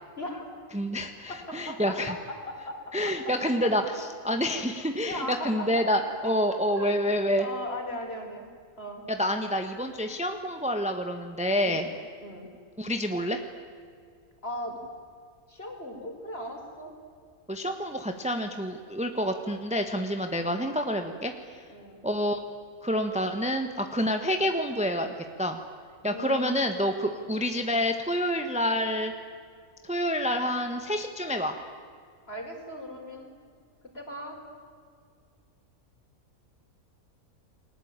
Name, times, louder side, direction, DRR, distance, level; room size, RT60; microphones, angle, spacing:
voice 1, 0.2-0.5 1.3-2.8 3.0-3.3 3.6-3.7 5.0-6.3 6.8-7.0 7.4-8.5 8.8-9.0 11.6-12.5 14.4-14.8 15.5-16.9 20.5-20.7 21.7-22.0 26.0-26.6 27.1-27.3 32.3-33.3 33.9-34.4, left 1 dB, 40° left, 3 dB, 4.9 m, -38 dB
voice 2, 0.7-2.1 2.9-3.8 4.2-7.5 9.2-11.9 12.8-13.4 17.5-21.6 22.0-22.4 22.8-25.1 25.4-25.6 26.0-29.1 29.8-31.5, equal, 5° right, 6 dB, 1.4 m, -28 dB
30.0 x 21.5 x 9.1 m, 2.1 s
omnidirectional pair, 1.6 m